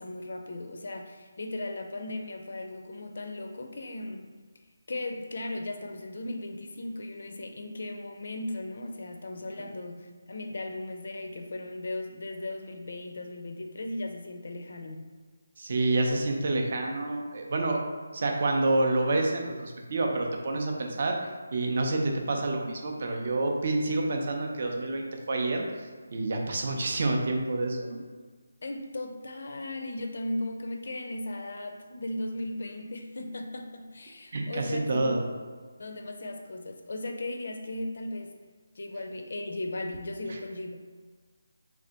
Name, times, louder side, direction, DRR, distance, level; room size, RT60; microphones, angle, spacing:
voice 1, 0.0-4.3 4.9-15.1 28.6-35.1 35.8-38.3 38.8-40.8, left 1 dB, 45° left, 4 dB, 0.5 m, -37 dB
voice 2, 15.6-17.8 18.1-25.6 26.1-28.0 34.3-35.2, right 2 dB, 35° right, 2 dB, 0.5 m, -28 dB
3.5 x 3.3 x 3.9 m, 1.5 s
hypercardioid pair, 180°, 0 cm